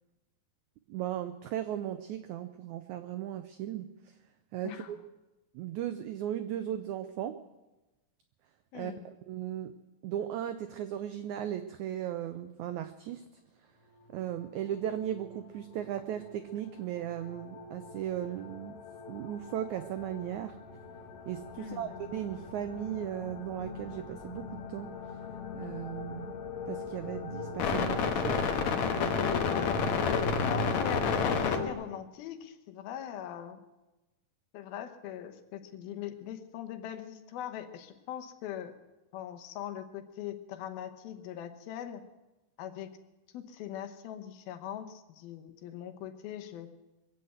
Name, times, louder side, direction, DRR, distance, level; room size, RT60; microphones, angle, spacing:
voice 1, 0.9-3.9 4.5-5.0 5.5-7.4 8.7-8.9 9.3-9.7 10.0-13.2 14.1-18.8 19.1-20.6 21.3-25.0 25.5-26.3 26.7-28.5, right 11 dB, 90° right, 10 dB, 1.6 m, -36 dB
voice 2, 4.6-5.0 8.7-9.1 21.6-21.9 29.4-33.6 34.5-38.7 39.1-42.0 42.6-42.9 43.3-46.7, left 10 dB, 85° left, 7 dB, 2.9 m, -41 dB
sound 1, 14.4-15.3 16.0-16.3 17.1-31.7, left 5 dB, 60° left, 2.1 m, -33 dB
23.0 x 7.9 x 7.9 m, 1.1 s
omnidirectional pair, 4.2 m